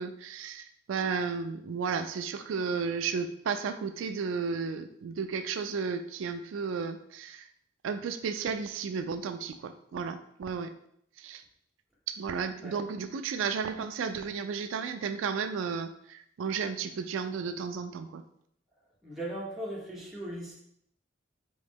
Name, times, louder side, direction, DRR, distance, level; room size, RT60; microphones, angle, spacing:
voice 1, 0.0-7.5 7.8-10.7 11.2-11.4 12.1-18.2, right 5 dB, 90° right, 9 dB, 0.3 m, -33 dB
voice 2, 19.0-20.6, right 1 dB, ahead, -5 dB, 1.1 m, -38 dB
4.8 x 3.1 x 3.4 m, 0.70 s
head